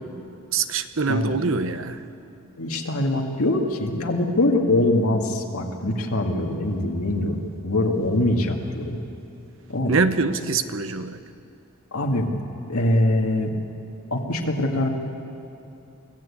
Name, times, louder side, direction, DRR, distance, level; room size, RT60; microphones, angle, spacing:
voice 1, 0.5-2.0 9.9-11.2, right 4 dB, 70° right, 11 dB, 0.9 m, -24 dB
voice 2, 2.6-9.0 9.7-10.0 11.9-12.4 12.7-13.5 14.1-14.9, left 1 dB, 90° left, 1 dB, 2.0 m, -23 dB
24.5 x 15.5 x 8.6 m, 2.8 s
head